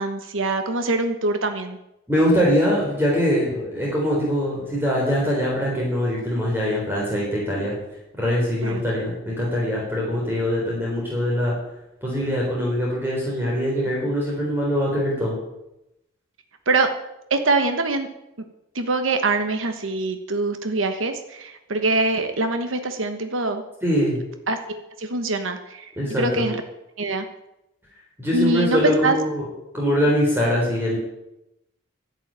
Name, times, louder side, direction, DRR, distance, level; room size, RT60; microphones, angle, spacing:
voice 1, 0.0-1.8 8.6-8.8 16.7-16.9 17.3-18.1 18.7-23.6 24.5-26.6 27.0-27.2 28.3-29.2 30.2-30.3, right 3 dB, 85° right, 7 dB, 1.2 m, -24 dB
voice 2, 2.1-7.7 8.2-11.5 12.0-15.4 23.8-24.2 26.0-26.4 28.2-29.4 29.7-31.0, equal, 10° right, -4 dB, 3.7 m, -22 dB
11.5 x 8.2 x 8.8 m, 0.88 s
head